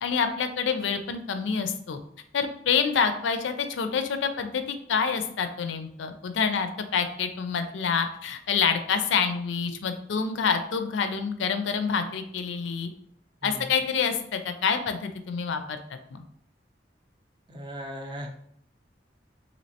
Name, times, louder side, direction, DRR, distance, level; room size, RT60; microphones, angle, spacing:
voice 1, 0.0-2.0 2.3-12.9 13.4-16.2, left 6 dB, 85° left, 8 dB, 0.4 m, -27 dB
voice 2, 17.5-18.3, equal, 25° right, 2 dB, 0.4 m, -37 dB
3.1 x 2.8 x 2.8 m, 0.67 s
head